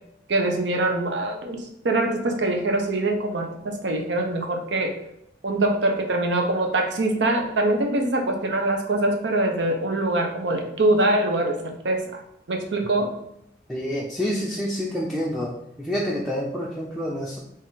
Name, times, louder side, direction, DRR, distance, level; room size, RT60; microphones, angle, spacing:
voice 1, 0.3-4.9 5.4-12.2 12.5-13.1, right 2 dB, 80° right, 3 dB, 0.7 m, -23 dB
voice 2, 13.7-17.4, equal, ahead, -5 dB, 0.4 m, -28 dB
4.0 x 2.5 x 3.9 m, 0.77 s
head